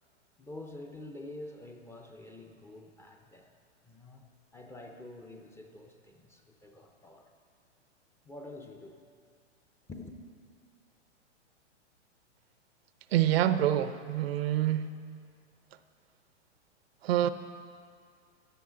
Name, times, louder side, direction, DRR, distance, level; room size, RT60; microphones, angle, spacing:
voice 1, 0.4-3.5 3.8-4.2 4.5-7.3 8.2-9.0 9.9-10.2, left 2 dB, 5° left, 2 dB, 0.5 m, -47 dB
voice 2, 13.1-14.9 17.0-17.3, right 12 dB, 60° right, 12 dB, 0.6 m, -26 dB
16.0 x 10.5 x 3.8 m, 2.2 s
hypercardioid pair, 130°, 36 cm